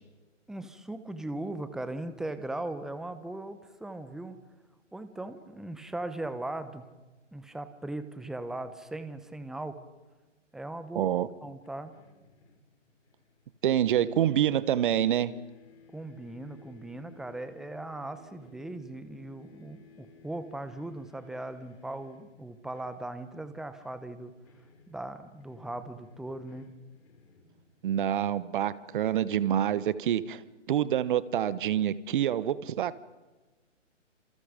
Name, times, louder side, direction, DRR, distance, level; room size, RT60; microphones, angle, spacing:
voice 1, 0.5-4.4 4.9-6.9 7.3-9.8 10.5-11.1 11.4-11.9 15.9-24.3 24.9-26.7, right 2 dB, ahead, 11 dB, 0.9 m, -39 dB
voice 2, 10.9-11.3 13.6-15.3 27.8-30.4 30.7-33.0, right 10 dB, 40° right, 18 dB, 1.2 m, -27 dB
sound 1, 11.6-13.8 14.1-28.1, left 4 dB, 55° left, 6.1 m, -58 dB
29.5 x 27.5 x 5.2 m, 1.2 s
hypercardioid pair, 145°, 37 cm